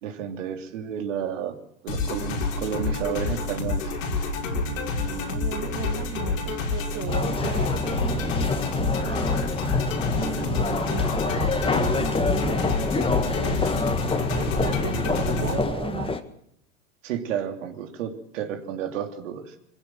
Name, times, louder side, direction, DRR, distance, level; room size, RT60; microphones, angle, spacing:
voice 1, 0.0-1.6 1.8-4.0 17.0-19.5, right 9 dB, 70° right, 5 dB, 3.3 m, -31 dB
sound 1, 1.9-15.6, left 3 dB, 85° left, 5.8 m, -28 dB
voice 2, 5.1-9.5 10.1-13.9 14.3-16.2, right 9 dB, 35° right, 7 dB, 1.7 m, -36 dB
sound 2, 7.1-16.2, left 4 dB, 15° left, 1.8 m, -27 dB
22.5 x 16.0 x 7.6 m, 0.74 s
hypercardioid pair, 105°, 38 cm